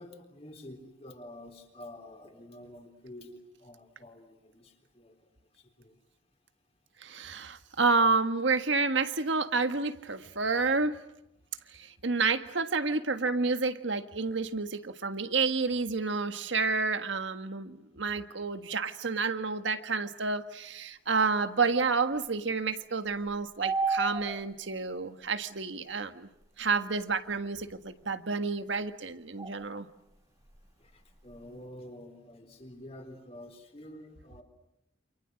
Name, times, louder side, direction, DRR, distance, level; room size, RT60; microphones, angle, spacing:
voice 1, 0.0-5.1 5.6-5.9 30.8-34.4, left 1 dB, 35° left, 4 dB, 3.8 m, -48 dB
voice 2, 7.0-11.0 11.7-26.3 26.6-29.9, right 4 dB, 90° right, 9 dB, 1.6 m, -29 dB
sound 1, 23.1-24.7 27.1-27.2 29.4-29.8 30.1-30.2 30.5-31.4, right 4 dB, 20° right, 1.8 m, -32 dB
29.0 x 27.5 x 6.4 m, 0.84 s
head